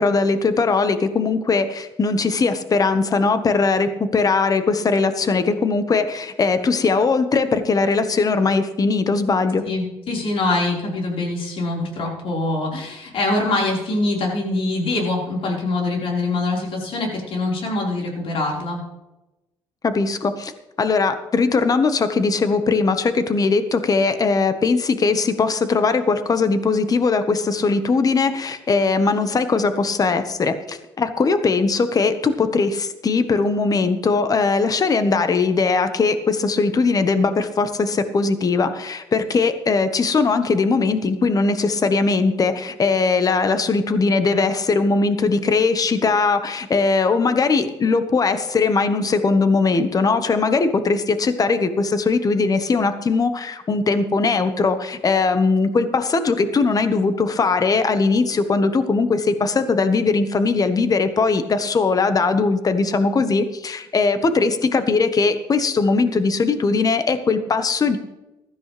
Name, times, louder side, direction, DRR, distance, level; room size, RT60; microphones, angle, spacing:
voice 1, 0.0-9.6 19.8-20.5 20.8-68.0, left 4 dB, 35° left, 10 dB, 1.3 m, -20 dB
voice 2, 9.6-18.8, left 2 dB, 60° left, -1 dB, 4.6 m, -24 dB
15.5 x 13.5 x 3.4 m, 0.98 s
supercardioid pair, 80°, 10 cm